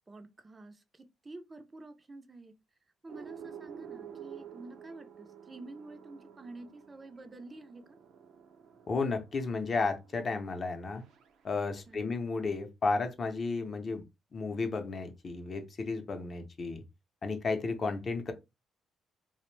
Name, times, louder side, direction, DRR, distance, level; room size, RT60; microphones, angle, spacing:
voice 1, 0.1-2.5 3.0-8.0 11.9-12.2, right 2 dB, 25° right, 0.4 m, -49 dB
sound 1, 3.1-12.0, right 8 dB, 85° right, 0.5 m, -51 dB
voice 2, 8.9-11.0 11.4-14.0 14.3-16.8 17.2-18.3, left 4 dB, 45° left, 0.5 m, -33 dB
2.5 x 2.0 x 3.1 m
cardioid pair, 90°, 0 cm